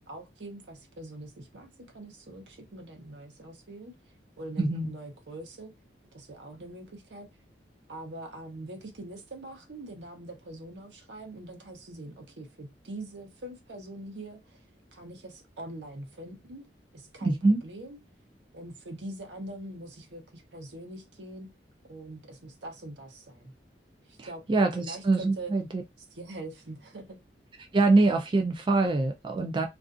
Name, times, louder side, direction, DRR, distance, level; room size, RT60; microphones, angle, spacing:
voice 1, 0.1-3.9 4.4-5.7 6.1-7.3 7.9-14.6 14.9-16.7 16.9-18.0 18.5-21.5 21.9-23.5 24.1-24.5 24.8-25.5 26.1-27.2, right 1 dB, 75° right, 0.8 m, -43 dB
voice 2, 4.6-4.9 17.2-17.6 24.2-25.8 27.7-29.7, right 3 dB, 25° right, 0.3 m, -24 dB
2.5 x 2.4 x 2.4 m
head